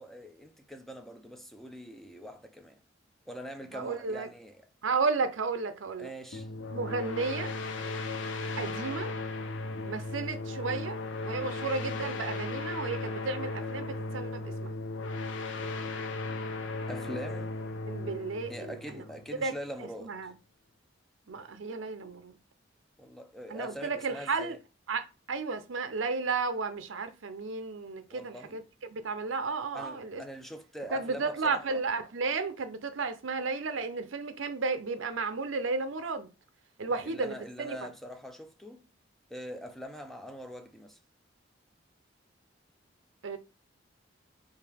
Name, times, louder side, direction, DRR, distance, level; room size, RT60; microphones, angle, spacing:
voice 1, 0.0-2.8 3.3-4.7 6.0-6.5 16.9-17.6 18.5-20.2 23.0-24.6 28.1-28.6 29.7-31.8 36.9-38.8 39.3-41.0, equal, ahead, 0.5 m, -43 dB
voice 2, 3.7-4.3 4.8-6.1 6.7-7.5 8.6-9.1 9.8-11.0 11.2-14.7 17.9-19.0 19.3-19.5 20.0-20.3 21.3-22.3 23.5-24.6 24.9-30.2 30.9-36.3 36.8-37.8 43.2-43.4, right 4 dB, 80° right, 0.7 m, -33 dB
sound 1, 6.3-19.7, left 2 dB, 70° left, 0.7 m, -36 dB
4.8 x 2.8 x 3.5 m
head